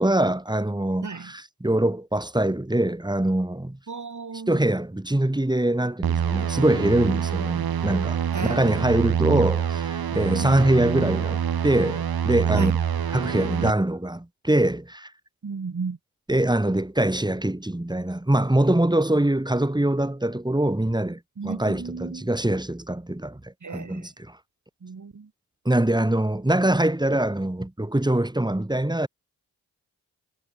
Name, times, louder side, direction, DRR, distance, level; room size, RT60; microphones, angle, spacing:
voice 1, 0.0-3.8 4.5-12.7 13.1-15.1 16.3-24.4 25.6-29.1, right 1 dB, 10° right, 2.9 m, -23 dB
voice 2, 3.9-4.6 8.3-8.6 12.5-12.7 15.4-16.0 21.4-22.3 23.6-24.1 24.8-25.3, right 5 dB, 50° right, 4.9 m, -34 dB
sound 1, 6.0-13.7, right 8 dB, 70° right, 2.1 m, -26 dB
supercardioid pair, 40°, 38 cm